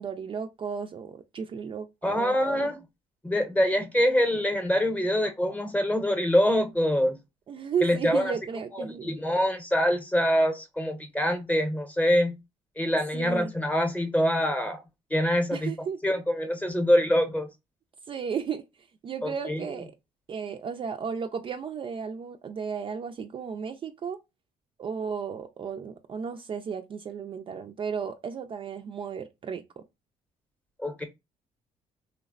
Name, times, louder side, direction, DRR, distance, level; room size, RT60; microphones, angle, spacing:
voice 1, 0.0-2.7 7.5-9.1 13.1-13.5 15.5-16.0 18.1-18.6 19.0-19.9 20.3-24.2 24.8-29.8, right 6 dB, 40° right, 0.4 m, -34 dB
voice 2, 2.0-2.8 3.2-7.2 7.8-8.3 8.7-12.4 12.8-14.8 15.1-15.7 16.0-17.5 19.2-19.8 30.8-31.0, equal, 10° left, 0.8 m, -25 dB
3.2 x 2.0 x 2.3 m
supercardioid pair, 80°, 14 cm